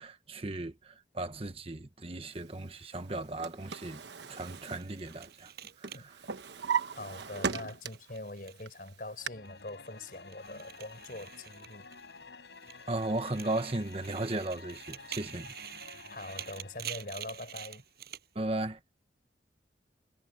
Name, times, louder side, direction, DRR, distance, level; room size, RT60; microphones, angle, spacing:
voice 1, 0.0-4.0 4.3-5.5 5.8-6.2 12.9-15.5 18.3-18.8, right 2 dB, 35° right, 1.1 m, -36 dB
Drawer open or close, 3.1-5.5 5.8-8.2 8.6-9.3, right 6 dB, 75° right, 1.2 m, -37 dB
sound 1, 4.3-8.9 9.2-12.2 12.5-18.3, right 11 dB, 60° right, 7.0 m, -47 dB
voice 2, 6.9-11.9 15.3-15.4 16.1-17.8, left 2 dB, 50° left, 5.8 m, -43 dB
sound 2, 9.2-17.7, left 4 dB, 85° left, 4.5 m, -51 dB
head